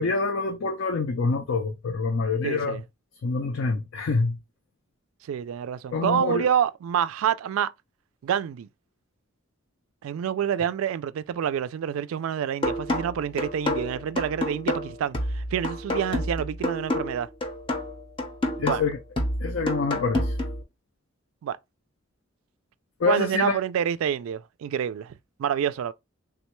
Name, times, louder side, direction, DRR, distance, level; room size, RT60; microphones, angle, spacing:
voice 1, 0.0-2.8 3.2-4.4 5.9-6.5 18.6-19.0 19.4-20.3 23.0-23.6, left 4 dB, 75° left, 0.5 m, -26 dB
voice 2, 2.4-2.8 5.2-7.7 8.2-8.7 10.0-17.3 18.6-18.8 21.4-21.6 23.1-25.1 25.4-25.9, right 8 dB, 90° right, 0.3 m, -27 dB
sound 1, 12.6-20.6, left 1 dB, 25° left, 0.5 m, -29 dB
3.4 x 2.2 x 3.0 m
head